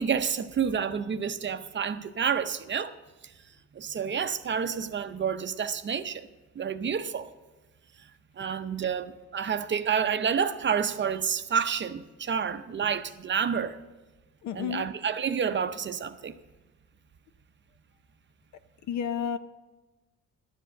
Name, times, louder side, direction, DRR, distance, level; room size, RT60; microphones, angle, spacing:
voice 1, 0.0-2.9 3.7-6.3 6.6-7.3 8.4-13.8 14.5-16.3, right 7 dB, 40° right, 0.6 m, -29 dB
voice 2, 14.4-14.9 18.9-19.4, left 8 dB, 70° left, 0.8 m, -31 dB
12.0 x 7.7 x 6.5 m
cardioid pair, 90°, 30 cm